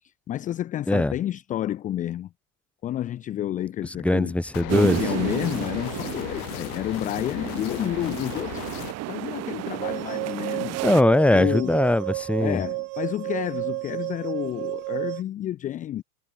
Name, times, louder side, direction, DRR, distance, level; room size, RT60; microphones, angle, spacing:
voice 1, 0.0-2.3 2.8-4.4 4.7-8.7 9.1-10.9 11.3-11.8 12.4-16.0, left 12 dB, 20° left, 0.4 m, -30 dB
voice 2, 4.0-5.0 10.8-12.6, left 1 dB, 5° left, 1.2 m, -20 dB
sound 1, 4.5-8.9, left 25 dB, 75° left, 1.2 m, -36 dB
sound 2, 4.7-11.0, right 17 dB, 35° right, 1.1 m, -33 dB
sound 3, 9.8-15.2, right 40 dB or more, 60° right, 3.7 m, -31 dB
supercardioid pair, 155°, 44 cm